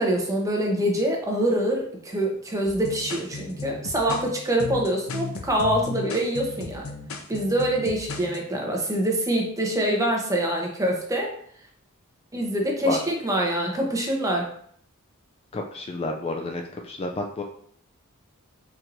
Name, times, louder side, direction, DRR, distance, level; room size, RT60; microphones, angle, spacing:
voice 1, 0.0-6.8 7.3-11.3 12.3-14.5, right 1 dB, 15° right, 0 dB, 0.9 m, -25 dB
sound 1, 2.7-8.4, left 3 dB, 70° left, 0.6 m, -35 dB
voice 2, 15.5-17.4, left 2 dB, 30° left, 2 dB, 0.3 m, -30 dB
4.5 x 4.4 x 2.6 m, 0.64 s
head